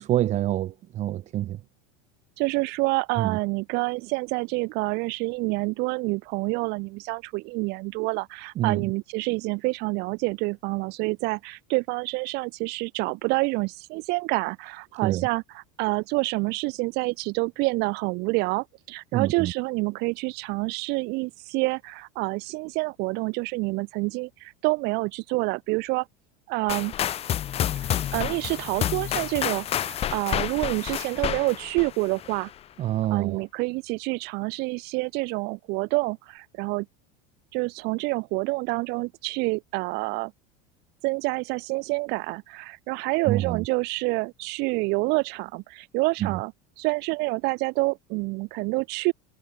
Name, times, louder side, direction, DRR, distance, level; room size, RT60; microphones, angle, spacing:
voice 1, 0.0-1.6 3.2-3.4 8.6-8.9 15.0-15.3 19.1-19.5 32.8-33.4 43.3-43.6 46.2-46.3, right 13 dB, 35° right, 1.3 m, -26 dB
voice 2, 2.4-26.1 26.5-26.9 27.8-32.5 33.1-36.9 37.5-40.3 41.0-46.5 46.8-49.1, right 26 dB, 55° right, 3.3 m, -27 dB
sound 1, 26.7-32.5, left 11 dB, 30° left, 1.4 m, -29 dB
supercardioid pair, 145°, 20 cm